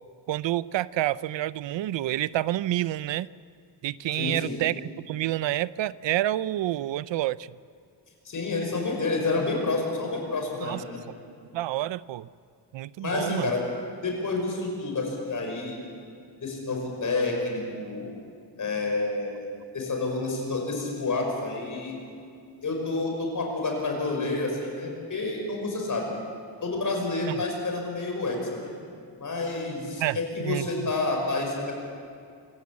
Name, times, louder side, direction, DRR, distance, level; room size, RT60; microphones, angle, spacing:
voice 1, 0.3-3.3 3.8-7.5 10.6-10.8 11.5-12.3 12.7-13.5 27.3-27.4 30.0-30.2 30.4-30.9, right 14 dB, 90° right, 18 dB, 0.6 m, -28 dB
voice 2, 4.1-4.6 8.2-11.0 13.0-13.6 14.0-15.8 16.4-18.1 18.6-19.4 19.7-22.0 22.6-26.1 26.6-28.7 29.2-31.7, left 3 dB, 45° left, 1 dB, 5.7 m, -29 dB
25.0 x 16.0 x 8.5 m, 2.4 s
wide cardioid pair, 155°, 43 cm